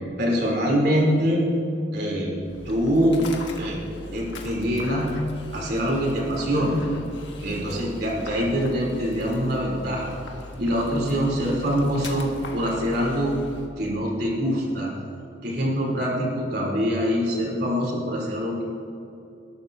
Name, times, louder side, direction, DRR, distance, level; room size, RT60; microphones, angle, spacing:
voice 1, 0.2-1.4 1.9-2.3 2.7-3.2 3.6-3.8 4.1-5.1 5.5-6.8 7.4-10.1 10.6-13.4 13.8-14.9 15.4-18.6, equal, 60° right, -3 dB, 3.5 m, -24 dB
Dog, 2.4-13.7, left 2 dB, 80° left, 1.7 m, -39 dB
20.5 x 12.0 x 2.8 m, 2.7 s
head